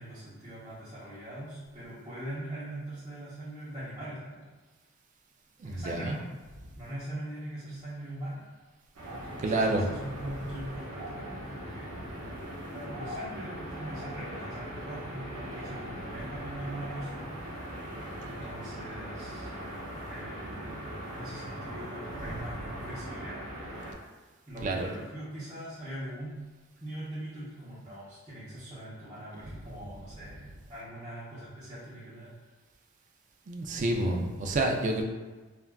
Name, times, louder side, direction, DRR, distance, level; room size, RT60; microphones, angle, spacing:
voice 1, 0.0-4.5 5.6-6.2 6.7-8.5 9.0-12.2 12.7-17.6 18.2-19.5 20.1-20.8 21.1-23.4 24.5-26.4 26.8-30.4 30.7-32.3, right 1 dB, 15° right, -14 dB, 0.7 m, -42 dB
voice 2, 5.6-6.2 9.4-9.9 24.6-24.9 33.5-35.0, right 2 dB, 35° right, 2 dB, 0.3 m, -28 dB
sound 1, 9.0-23.9, equal, 85° right, 0.7 m, -40 dB
3.3 x 2.3 x 2.2 m, 1.3 s
head